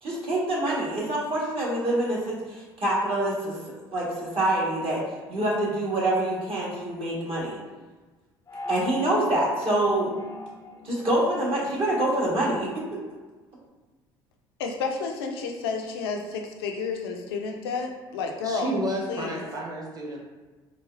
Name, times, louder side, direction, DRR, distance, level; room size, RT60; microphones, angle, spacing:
voice 1, 0.0-3.5 3.9-5.0 5.3-7.6 8.7-10.1 10.8-12.7, right 1 dB, 50° right, -5 dB, 1.4 m, -26 dB
sound 1, 8.5-13.1, left 2 dB, 25° left, 0.4 m, -42 dB
voice 2, 14.6-18.8 19.1-19.4, left 4 dB, 80° left, 3 dB, 0.4 m, -31 dB
voice 3, 18.4-20.2, right 1 dB, 30° right, -2 dB, 1.0 m, -31 dB
4.0 x 2.3 x 2.5 m, 1.3 s
hypercardioid pair, 60°, 12 cm